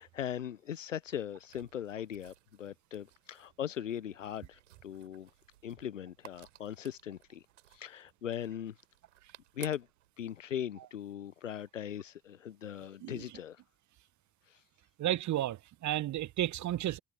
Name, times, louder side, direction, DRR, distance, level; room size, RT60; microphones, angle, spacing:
voice 1, 0.0-5.3 5.6-7.4 7.7-8.8 9.6-9.9 10.2-13.6 14.5-14.6, left 10 dB, 85° left, 0.8 m, -39 dB
sound 1, 1.0-10.1, right 13 dB, 80° right, 7.8 m, -58 dB
voice 2, 15.0-17.0, right 13 dB, 50° right, 1.1 m, -32 dB
figure-of-eight pair, 45°, 37 cm